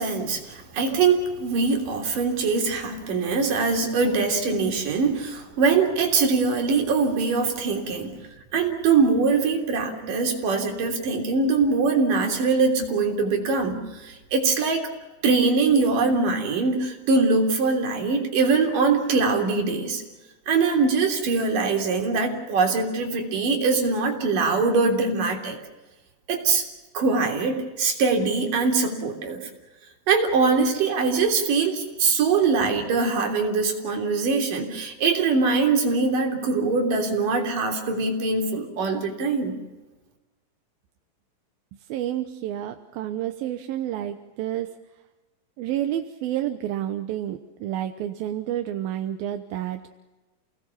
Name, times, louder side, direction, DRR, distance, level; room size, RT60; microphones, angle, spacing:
voice 1, 0.0-8.2 8.5-14.9 15.2-20.0 20.5-25.6 26.3-26.6 26.9-29.4 30.1-39.6, right 4 dB, 65° right, 2 dB, 4.9 m, -22 dB
voice 2, 41.9-44.8 45.6-50.0, right 11 dB, 85° right, 7 dB, 2.8 m, -29 dB
29.5 x 19.0 x 7.2 m, 1.1 s
omnidirectional pair, 4.1 m